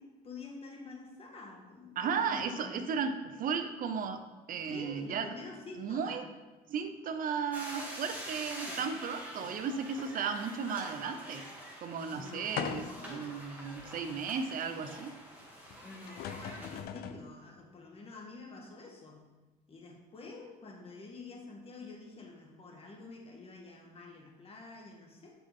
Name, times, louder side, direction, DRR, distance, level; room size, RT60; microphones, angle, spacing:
voice 1, 0.0-2.9 4.7-6.2 8.6-8.8 9.4-9.6 12.2-13.3 14.6-14.9 15.8-19.2 19.7-25.3, left 3 dB, 35° left, 0 dB, 1.6 m, -48 dB
voice 2, 2.0-4.2 4.5-5.3 5.8-6.2 6.7-11.5 11.8-15.1, right 6 dB, 55° right, 8 dB, 0.7 m, -35 dB
sound 1, 7.5-16.8, equal, 10° right, 1.9 m, -46 dB
sound 2, 12.6-13.2 13.8-13.9 15.7-15.8 16.1-17.3, left 8 dB, 70° left, 0.5 m, -39 dB
6.7 x 6.1 x 3.7 m, 1.2 s
cardioid pair, 110°, 17 cm